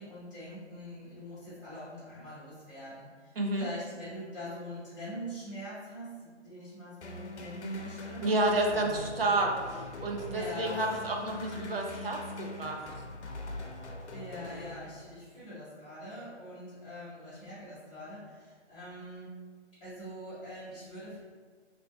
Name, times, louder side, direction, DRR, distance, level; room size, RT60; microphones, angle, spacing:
voice 1, 0.0-8.3 8.7-9.2 10.3-10.8 14.1-19.4 19.8-21.2, equal, 5° left, -21 dB, 0.9 m, -43 dB
voice 2, 3.4-3.7 8.2-12.9, right 2 dB, 55° right, 1 dB, 0.7 m, -30 dB
sound 1, 7.0-15.3, left 2 dB, 75° left, 0.8 m, -42 dB
3.3 x 2.7 x 3.9 m, 1.6 s
hypercardioid pair, 180°, 35 cm